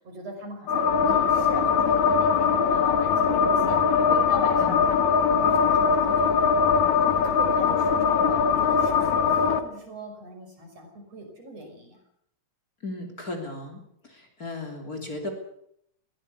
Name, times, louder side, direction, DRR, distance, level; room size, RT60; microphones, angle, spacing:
voice 1, 0.0-5.0 5.3-6.3 7.0-12.0, right 1 dB, 60° right, 3 dB, 6.9 m, -40 dB
sound 1, 0.7-9.6, left 6 dB, 75° left, 2.8 m, -21 dB
voice 2, 12.8-15.3, left 2 dB, 30° left, 4 dB, 3.5 m, -36 dB
21.5 x 17.0 x 8.1 m, 0.71 s
omnidirectional pair, 3.3 m